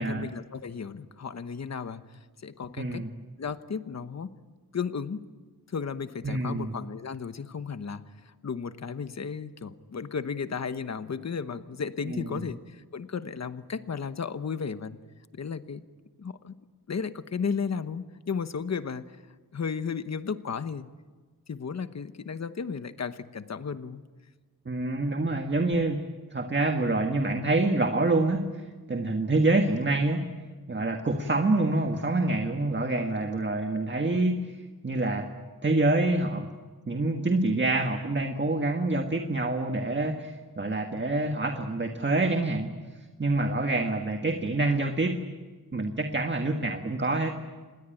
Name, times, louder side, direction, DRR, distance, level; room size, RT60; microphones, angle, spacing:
voice 1, 0.0-3.1 3.4-4.3 4.7-5.2 5.7-15.0 15.3-15.8 16.2-16.5 16.9-19.2 19.5-20.9 21.5-24.0, left 6 dB, 45° left, 11 dB, 1.1 m, -34 dB
voice 2, 2.8-3.1 6.2-6.8 12.1-12.4 24.7-26.0 26.3-28.4 28.9-30.2 30.7-34.5 34.8-35.3 35.6-36.5 36.9-42.7 43.2-45.2 45.7-47.3, right 2 dB, 30° right, 5 dB, 1.6 m, -26 dB
27.5 x 20.5 x 9.1 m, 1.4 s
wide cardioid pair, 135°, 38 cm